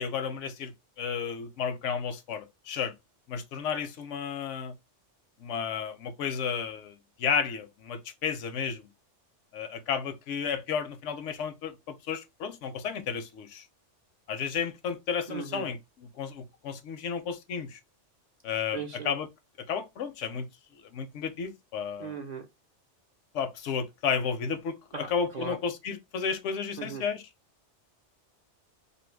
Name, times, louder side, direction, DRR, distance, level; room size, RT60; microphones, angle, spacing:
voice 1, 0.0-2.9 3.3-4.7 5.4-8.9 9.5-13.6 14.3-17.8 18.4-19.3 19.7-20.5 20.9-22.1 23.3-24.8 25.1-27.2, left 6 dB, 85° left, 1.0 m, -32 dB
voice 2, 15.3-15.7 18.7-19.2 22.0-22.5 24.9-25.6 26.8-27.0, right 5 dB, 50° right, 0.5 m, -38 dB
2.8 x 2.5 x 3.2 m
omnidirectional pair, 1.2 m